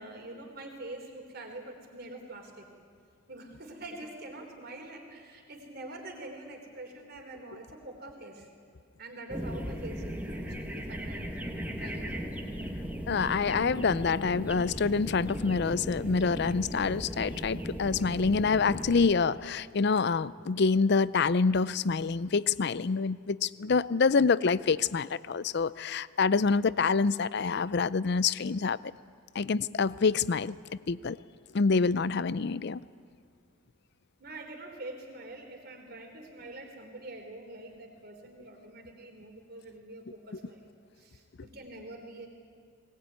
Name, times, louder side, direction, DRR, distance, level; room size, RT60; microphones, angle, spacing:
voice 1, 0.0-2.7 3.3-8.5 9.0-11.5 11.8-12.3 34.2-40.6 41.0-42.3, right 2 dB, 50° right, 3 dB, 3.6 m, -45 dB
sound 1, 9.3-19.1, equal, 10° right, 1.7 m, -37 dB
voice 2, 13.1-28.8 29.3-30.6 30.9-31.2 31.5-32.8, left 4 dB, 55° left, 18 dB, 0.5 m, -26 dB
20.0 x 19.5 x 9.4 m, 2.2 s
head